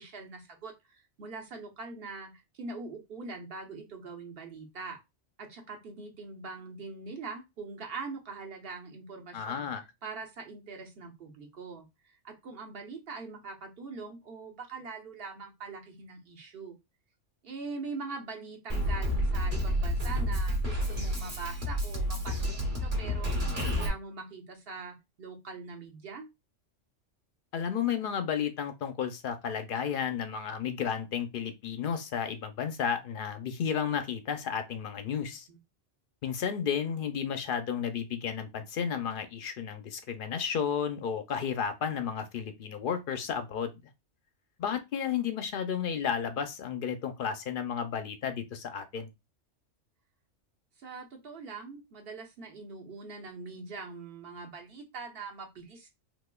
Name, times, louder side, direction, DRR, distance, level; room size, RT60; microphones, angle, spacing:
voice 1, 0.0-5.0 5.4-9.7 10.0-16.8 17.4-26.3 35.5-35.6 50.8-55.9, right 4 dB, 55° right, 1.0 m, -43 dB
voice 2, 9.3-9.8 27.5-35.5 36.2-43.8 44.6-49.1, left 7 dB, 60° left, 0.6 m, -32 dB
Drum kit, 18.7-23.9, equal, 30° right, 1.2 m, -30 dB
4.0 x 2.9 x 2.2 m
omnidirectional pair, 1.3 m